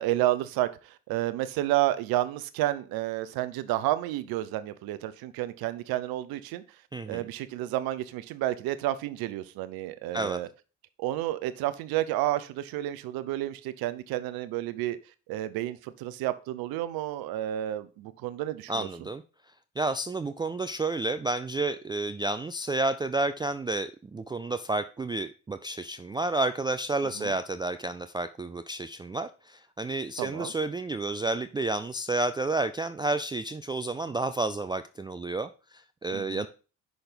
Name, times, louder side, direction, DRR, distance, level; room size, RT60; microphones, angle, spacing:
voice 1, 0.0-6.6 7.1-10.5 11.0-15.0 15.3-18.9 27.2-27.4 30.2-30.5 36.1-36.5, right 14 dB, 70° right, 0.7 m, -30 dB
voice 2, 6.9-7.3 10.1-10.4 18.7-19.2 19.8-36.5, right 2 dB, 15° right, 0.3 m, -30 dB
5.9 x 4.0 x 5.1 m
hypercardioid pair, 65°, 38 cm